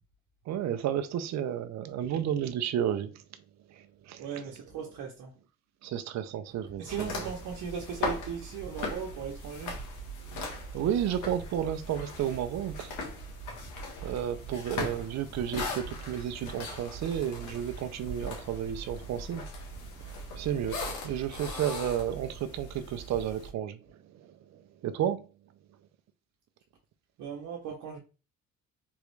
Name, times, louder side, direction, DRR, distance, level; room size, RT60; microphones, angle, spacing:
voice 1, 0.5-3.2 3.7-4.3 5.8-7.3 10.7-12.9 14.0-19.4 20.0-25.3, right 10 dB, 65° right, 0.6 m, -32 dB
voice 2, 4.2-5.3 6.8-9.8 27.2-28.0, right 6 dB, 85° right, 0.9 m, -38 dB
sound 1, 6.9-23.5, left 1 dB, 85° left, 1.3 m, -39 dB
3.6 x 3.0 x 3.2 m
cardioid pair, 90°, 30 cm